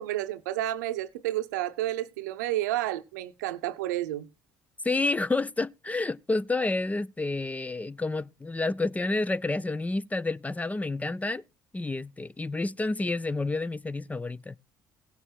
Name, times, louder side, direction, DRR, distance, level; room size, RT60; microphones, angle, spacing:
voice 1, 0.0-4.3, right 14 dB, 80° right, 0.7 m, -30 dB
voice 2, 4.8-11.4 11.7-14.6, left 2 dB, 15° left, 0.5 m, -29 dB
16.0 x 6.7 x 4.5 m
hypercardioid pair, 55°, 9 cm